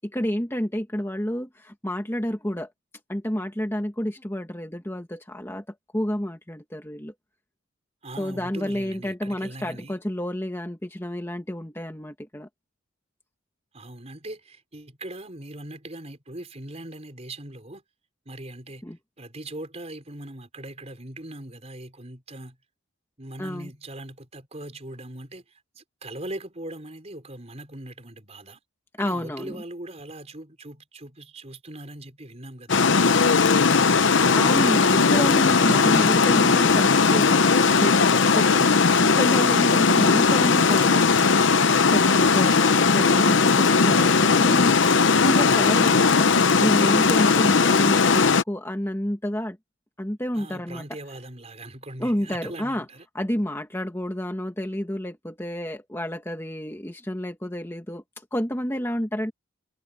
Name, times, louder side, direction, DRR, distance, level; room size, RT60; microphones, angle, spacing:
voice 1, 0.0-2.7 3.1-5.6 5.9-7.1 8.2-12.5 18.8-19.0 23.4-23.7 29.0-29.6 34.3-41.0 41.8-44.8 45.1-46.3 46.6-49.6 50.0-50.9 52.0-52.9 53.1-58.0 58.3-59.3, equal, 10° left, 1.6 m, -29 dB
voice 2, 8.0-10.0 13.7-17.8 18.2-18.8 19.2-22.6 23.2-28.6 29.0-32.8 33.0-33.6 47.2-47.8 50.3-53.1, right 1 dB, 30° right, 4.6 m, -40 dB
Water, 32.7-48.4, left 4 dB, 60° left, 0.8 m, -18 dB
head